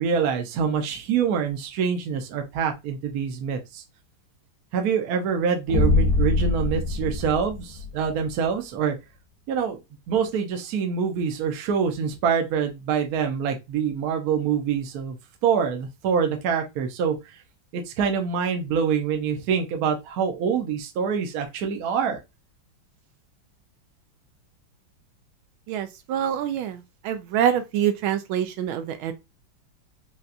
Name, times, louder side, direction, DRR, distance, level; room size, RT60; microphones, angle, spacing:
voice 1, 0.0-3.8 4.7-8.9 9.5-9.8 10.1-15.1 15.4-17.2 17.7-22.2, right 7 dB, 65° right, 1.0 m, -25 dB
sound 1, 5.7-8.3, left 2 dB, 75° left, 0.8 m, -23 dB
voice 2, 25.7-26.8 27.0-29.1, right 9 dB, 85° right, 1.4 m, -25 dB
4.1 x 2.3 x 2.4 m
omnidirectional pair, 2.2 m